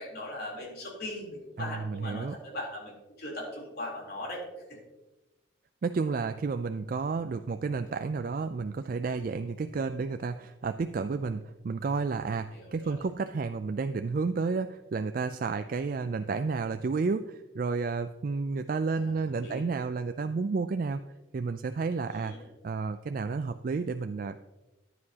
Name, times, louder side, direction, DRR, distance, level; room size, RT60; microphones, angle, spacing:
voice 1, 0.0-4.4 4.7-4.8 12.5-13.1 19.0-19.1 19.4-19.6 22.1-22.5, left 1 dB, 55° left, -2 dB, 3.5 m, -39 dB
voice 2, 1.6-2.4 5.8-21.0 21.3-22.3 22.6-24.4, right 4 dB, 45° right, 9 dB, 0.3 m, -31 dB
14.5 x 9.8 x 2.8 m, 1.1 s
head